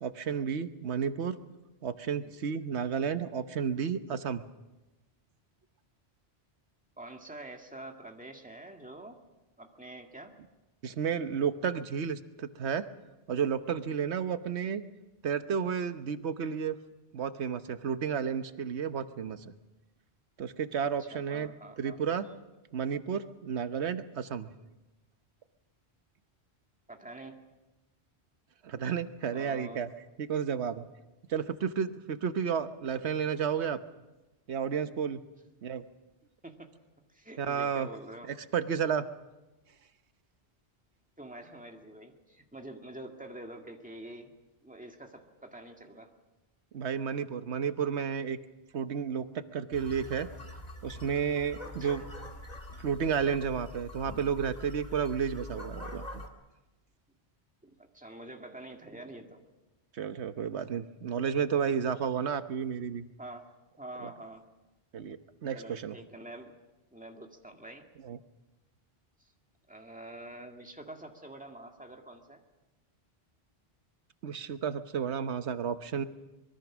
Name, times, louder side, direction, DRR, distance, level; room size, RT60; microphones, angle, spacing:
voice 1, 0.0-1.3 1.8-4.4 10.8-12.8 13.3-14.8 15.2-16.8 17.1-19.4 20.4-21.5 21.8-22.3 22.7-24.5 28.6-29.9 30.2-30.9 31.3-33.8 34.5-35.2 35.6-35.8 37.4-37.9 38.3-39.0 46.7-48.4 48.7-49.3 49.5-50.3 50.8-52.0 52.8-56.2 60.0-63.1 64.0-64.1 64.9-66.0 68.0-68.2 74.2-76.0, right 7 dB, 90° right, 11 dB, 1.3 m, -32 dB
voice 2, 7.0-9.2 9.6-10.3 21.0-22.0 26.9-27.4 29.3-29.8 36.4-36.7 37.1-38.3 41.2-44.3 44.6-46.1 51.8-52.1 57.6-59.4 63.2-63.5 63.8-64.4 65.5-66.6 66.9-67.9 69.2-69.3 69.7-72.4, right 1 dB, 5° right, 3 dB, 2.0 m, -46 dB
sound 1, 49.7-56.3, left 1 dB, 35° left, 2.2 m, -44 dB
24.5 x 22.5 x 6.1 m, 1.0 s
omnidirectional pair, 1.1 m